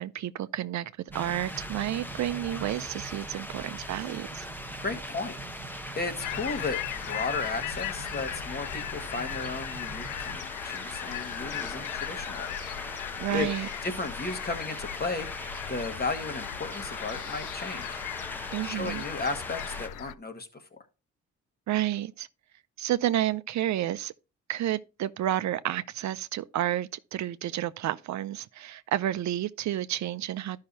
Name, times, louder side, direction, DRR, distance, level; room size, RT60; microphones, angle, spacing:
voice 1, 0.0-4.5 13.2-13.7 18.5-19.0 21.7-22.3 22.8-24.1 24.5-30.6, right 12 dB, 65° right, 0.5 m, -30 dB
sound 1, 1.1-19.9, left 1 dB, 5° left, 0.8 m, -41 dB
sound 2, 1.1-10.4, right 4 dB, 50° right, 1.3 m, -45 dB
voice 2, 4.8-6.8 7.1-12.5 12.8-13.5 13.8-15.3 15.7-18.0 18.6-20.8, left 3 dB, 30° left, 1.4 m, -35 dB
sound 3, 6.2-20.1, left 12 dB, 80° left, 0.5 m, -38 dB
12.0 x 5.7 x 2.7 m
cardioid pair, 75°, 31 cm